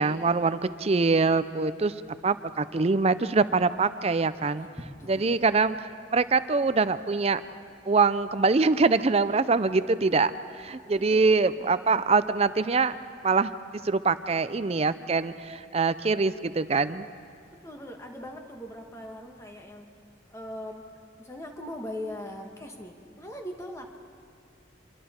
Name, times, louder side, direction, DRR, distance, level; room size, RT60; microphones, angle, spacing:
voice 1, 0.0-1.9 2.2-4.7 5.1-7.4 7.9-10.3 10.6-12.9 13.2-13.5 13.8-17.1, right 4 dB, 30° right, 13 dB, 0.5 m, -24 dB
voice 2, 5.0-5.4 5.7-5.9 11.0-11.2 11.6-11.8 17.5-19.9 20.3-20.9 21.2-24.0, left 1 dB, 15° left, 3 dB, 1.5 m, -40 dB
27.5 x 21.5 x 4.4 m, 2.3 s
head